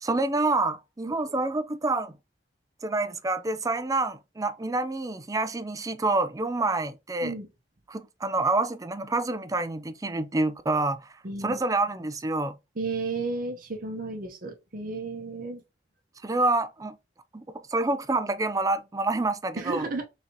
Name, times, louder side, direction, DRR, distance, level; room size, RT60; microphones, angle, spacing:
voice 1, 0.0-2.2 2.8-7.3 7.9-11.1 11.4-12.6 16.2-17.0 17.3-19.9, right 2 dB, 20° right, 0.5 m, -27 dB
voice 2, 11.2-11.6 12.8-15.6 19.6-20.1, right 3 dB, 55° right, 0.8 m, -33 dB
4.0 x 2.8 x 4.4 m
head